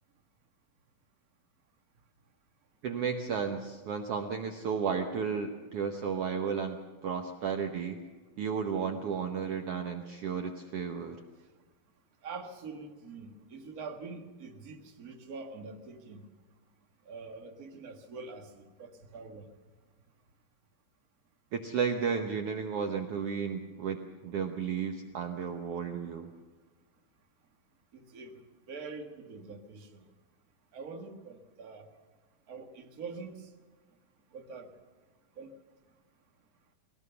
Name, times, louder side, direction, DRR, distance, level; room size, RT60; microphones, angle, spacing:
voice 1, 2.8-8.0 8.4-11.2 21.5-26.3, right 6 dB, 75° right, 4 dB, 1.3 m, -33 dB
voice 2, 12.2-16.3 17.1-19.4 27.9-28.3 28.7-30.0 30.7-31.9 32.5-33.4 34.3-34.7 35.4-35.5, right 4 dB, 40° right, 3 dB, 1.2 m, -44 dB
21.0 x 17.5 x 6.9 m, 1.4 s
omnidirectional pair, 4.2 m